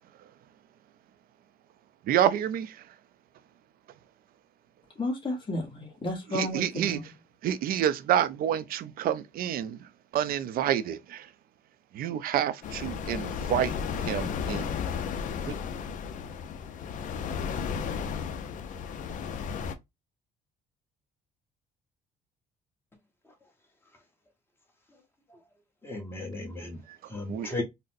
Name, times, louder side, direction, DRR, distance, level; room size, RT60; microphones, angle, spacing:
voice 1, 2.1-2.8 6.3-7.0 7.4-11.3 11.9-13.8 14.1-14.7 15.5-15.6 26.9-27.0 27.3-27.5, right 10 dB, 60° right, 0.4 m, -28 dB
voice 2, 5.0-7.1, left 1 dB, 30° left, 1.2 m, -32 dB
sound 1, 12.6-19.7, left 6 dB, 50° left, 0.5 m, -34 dB
voice 3, 25.8-26.8 27.1-27.6, left 2 dB, 15° left, 1.0 m, -36 dB
3.9 x 2.1 x 2.5 m
cardioid pair, 110°, 17 cm